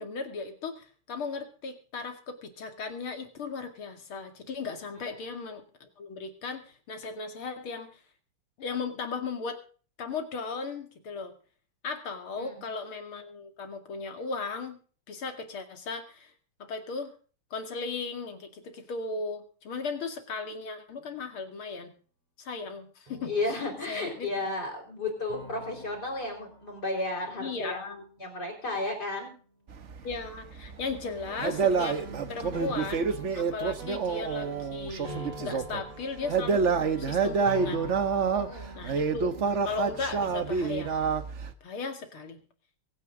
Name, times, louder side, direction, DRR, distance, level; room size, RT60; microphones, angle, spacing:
voice 1, 0.0-8.0 8.6-9.6 10.0-11.3 11.8-14.8 15.1-16.3 16.6-17.1 17.5-21.9 22.4-23.6 23.9-24.3 27.4-28.0 30.0-32.0 32.3-37.9 38.7-39.4 39.6-41.0 41.6-42.4, left 4 dB, 75° left, 6 dB, 3.1 m, -36 dB
voice 2, 12.4-12.7 23.2-27.8 28.2-29.3 38.3-38.8 39.2-39.6, left 2 dB, 45° left, 2 dB, 4.8 m, -33 dB
sound 1, 21.0-21.1 23.1-24.1 25.3-28.6 31.3-39.2, right 1 dB, 75° right, 5.5 m, -44 dB
sound 2, 29.7-35.8 36.2-41.5, right 5 dB, 45° right, 1.1 m, -28 dB
23.5 x 9.5 x 3.8 m, 0.39 s
omnidirectional pair, 2.4 m